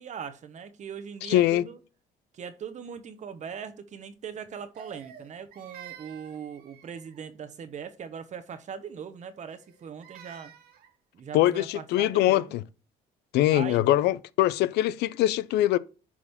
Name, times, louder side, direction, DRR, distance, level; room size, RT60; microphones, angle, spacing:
voice 1, 0.0-1.8 2.3-10.5 11.1-12.6 13.5-14.0, right 7 dB, 45° right, 1.1 m, -40 dB
voice 2, 1.2-1.6 11.3-12.6 13.3-15.8, left 14 dB, 80° left, 0.5 m, -23 dB
Crying sobbing, 4.7-7.3 9.5-10.9, right 9 dB, 65° right, 1.4 m, -49 dB
11.0 x 4.9 x 3.6 m
cardioid pair, 110°, 17 cm